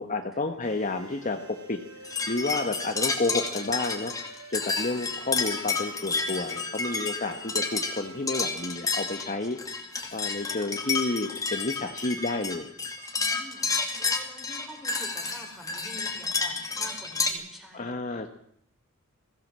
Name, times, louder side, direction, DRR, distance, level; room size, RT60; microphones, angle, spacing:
voice 1, 0.0-1.4 1.7-1.8 2.3-4.1 4.5-9.6 10.1-12.7 17.7-18.3, left 2 dB, 35° left, 5 dB, 1.4 m, -30 dB
sound 1, 0.6-10.5, right 3 dB, 80° right, 5.3 m, -49 dB
sound 2, 2.0-17.3, left 4 dB, 15° left, 2.5 m, -31 dB
voice 2, 13.2-13.7 14.0-18.2, equal, ahead, 3 dB, 4.7 m, -47 dB
21.5 x 16.0 x 7.6 m, 0.70 s
head